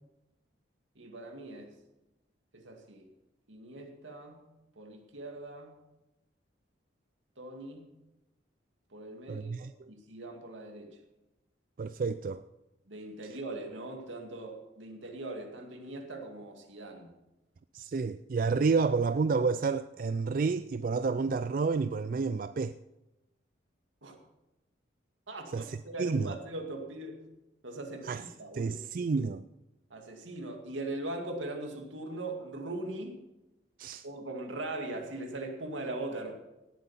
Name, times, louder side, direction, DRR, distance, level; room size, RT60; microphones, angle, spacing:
voice 1, 1.0-1.7 2.5-3.1 3.5-4.4 4.8-5.7 7.4-7.8 8.9-11.0 12.9-17.1 24.0-24.2 25.3-27.2 27.6-28.8 29.9-33.2 34.0-36.3, right 2 dB, 85° right, 2.3 m, -40 dB
voice 2, 9.3-9.9 11.8-12.4 17.7-22.8 25.5-26.4 28.0-28.2 28.5-29.4 33.8-34.0, right 4 dB, 45° right, 0.3 m, -30 dB
18.0 x 7.8 x 5.7 m
head